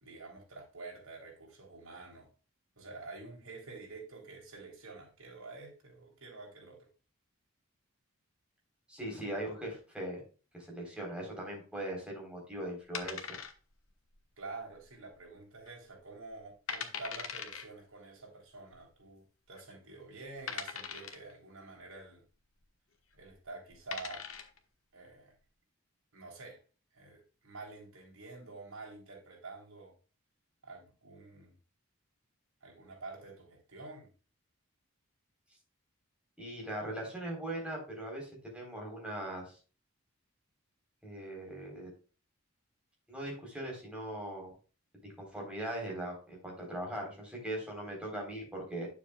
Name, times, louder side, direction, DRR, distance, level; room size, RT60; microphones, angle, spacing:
voice 1, 0.0-2.3 2.8-6.9 14.4-22.2 23.1-24.3 24.9-25.3 26.1-26.6 26.9-29.9 30.6-31.6 32.6-34.1, right 3 dB, 80° right, 3.6 m, -48 dB
voice 2, 8.9-10.2 10.5-13.4 36.4-39.6 41.0-41.9 43.1-44.5 45.0-48.9, right 1 dB, 5° right, 3.8 m, -40 dB
sound 1, 12.9-13.9 14.2-14.3 14.9-15.3 15.7-15.8 16.3-16.4 16.7-17.6 18.7-18.8 19.5-19.6 20.5-21.3 23.1-23.3 23.7-24.6, left 6 dB, 75° left, 1.2 m, -40 dB
9.5 x 7.2 x 2.3 m
head